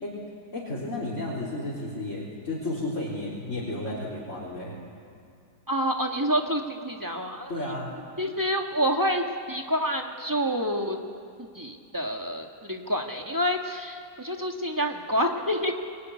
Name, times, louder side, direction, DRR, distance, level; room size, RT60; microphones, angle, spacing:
voice 1, 0.5-4.7 7.5-7.9, left 1 dB, 40° left, -6 dB, 4.2 m, -32 dB
voice 2, 5.7-7.5 8.2-11.0 11.4-15.7, equal, 10° right, 2 dB, 1.7 m, -28 dB
24.5 x 22.5 x 9.8 m, 2.3 s
omnidirectional pair, 2.1 m